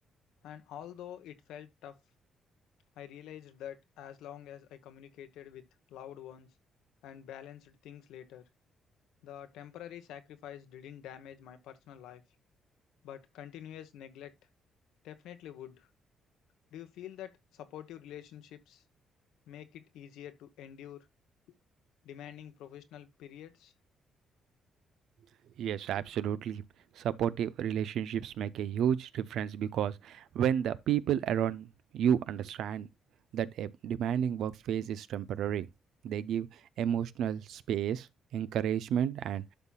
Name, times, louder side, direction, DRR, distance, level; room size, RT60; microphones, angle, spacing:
voice 1, 0.4-2.0 3.0-6.5 7.0-8.4 9.2-12.2 13.0-14.3 15.0-15.9 16.7-18.8 19.5-21.1 22.0-23.7, left 10 dB, 90° left, 1.1 m, -47 dB
voice 2, 25.6-26.6 27.0-31.7 31.9-32.9 33.3-35.7 36.0-36.5 36.8-38.1 38.3-39.4, right 9 dB, 75° right, 0.6 m, -31 dB
12.0 x 5.7 x 2.3 m
cardioid pair, 90°, 0 cm